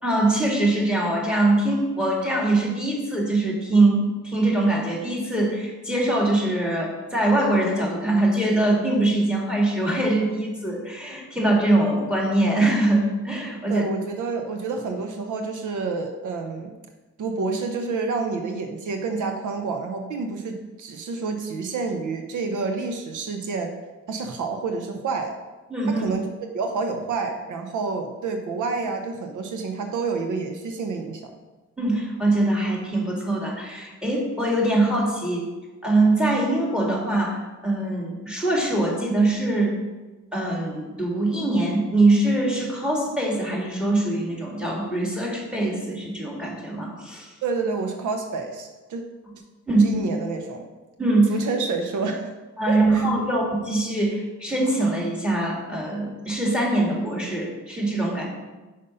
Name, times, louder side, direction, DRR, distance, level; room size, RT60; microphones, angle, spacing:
voice 1, 0.0-13.8 25.7-26.2 31.8-35.5 35.8-39.7 40.3-47.3 49.7-50.0 51.0-51.4 52.6-58.3, right 2 dB, 5° right, -2 dB, 2.1 m, -23 dB
voice 2, 13.7-16.7 17.2-23.7 24.1-25.3 25.9-26.2 26.5-31.2 47.4-49.0 49.8-50.7 51.3-52.3 52.7-53.0, right 4 dB, 75° right, 5 dB, 0.8 m, -28 dB
5.4 x 5.2 x 5.4 m, 1.2 s
cardioid pair, 95°, 31 cm